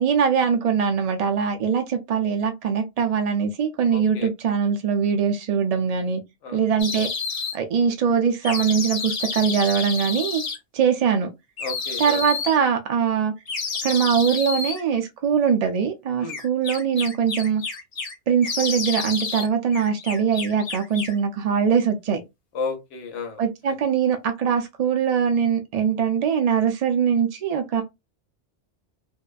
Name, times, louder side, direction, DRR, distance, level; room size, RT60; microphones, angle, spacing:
voice 1, 0.0-6.2 6.5-7.1 7.5-10.4 10.7-11.3 12.0-13.3 13.8-17.6 18.3-22.2 23.4-27.8, right 7 dB, 80° right, 0.3 m, -22 dB
voice 2, 3.9-4.3 6.4-6.6 11.6-12.2 16.2-16.4 22.5-23.4 23.7-23.8, left 4 dB, 85° left, 1.1 m, -32 dB
sound 1, 6.8-7.6 8.4-10.6 11.6-12.6 13.5-14.8 16.3-18.1 18.4-19.5 19.7-21.2, left 5 dB, 40° left, 0.6 m, -30 dB
2.6 x 2.2 x 2.3 m
omnidirectional pair, 1.2 m